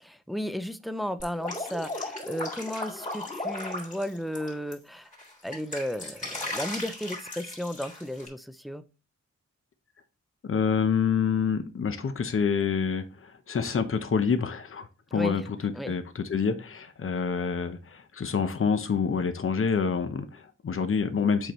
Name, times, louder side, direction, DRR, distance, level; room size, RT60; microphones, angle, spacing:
voice 1, 0.0-5.1 5.4-8.9 15.1-15.5 15.7-15.9, equal, ahead, 0.4 m, -34 dB
Drip, 1.2-4.7 5.1-8.3, left 2 dB, 25° left, 2.3 m, -36 dB
voice 2, 10.4-21.5, left 6 dB, 45° left, 0.9 m, -27 dB
7.8 x 4.5 x 3.1 m
wide cardioid pair, 120°, 29 cm